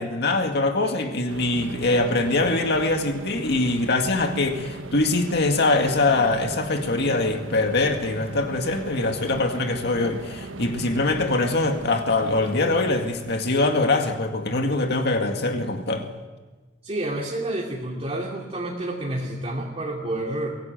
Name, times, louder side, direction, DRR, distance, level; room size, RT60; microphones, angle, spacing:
voice 1, 0.0-16.1, left 2 dB, 60° left, 2.1 m, -23 dB
sound 1, 1.3-13.6, right 2 dB, 90° right, 1.2 m, -38 dB
voice 2, 16.8-20.6, right 1 dB, 30° right, 2.7 m, -29 dB
23.5 x 17.0 x 9.2 m
head